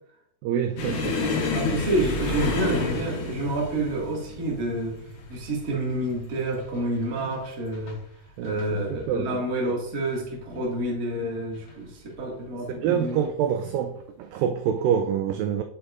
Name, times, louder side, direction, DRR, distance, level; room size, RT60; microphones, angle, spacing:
voice 1, 0.4-1.2 8.4-8.6 9.1-9.3 12.7-15.6, right 8 dB, 85° right, 7 dB, 2.0 m, -26 dB
sound 1, 0.8-8.0 8.3-8.7 9.0-9.2 10.0-10.6 11.5-11.7 13.1-13.3, left 3 dB, 70° left, 3.1 m, -30 dB
voice 2, 1.5-8.0 8.4-13.3, right 1 dB, 35° right, -3 dB, 1.6 m, -28 dB
8.6 x 7.6 x 2.5 m, 0.75 s
omnidirectional pair, 4.4 m